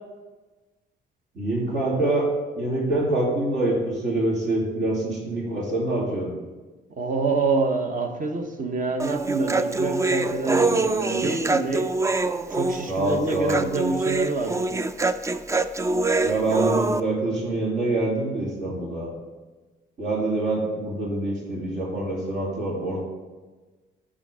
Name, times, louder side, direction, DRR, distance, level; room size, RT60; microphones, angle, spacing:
voice 1, 1.3-2.3 2.6-6.3 12.9-13.6 16.2-19.1 20.0-23.0, right 2 dB, 65° right, -5 dB, 2.5 m, -25 dB
voice 2, 7.0-11.9 12.5-14.7, right 3 dB, 40° right, 5 dB, 1.0 m, -26 dB
Human voice, 9.0-17.0, right 3 dB, 15° right, 0.3 m, -25 dB
9.7 x 3.8 x 5.0 m, 1.3 s
cardioid pair, 90°, 20 cm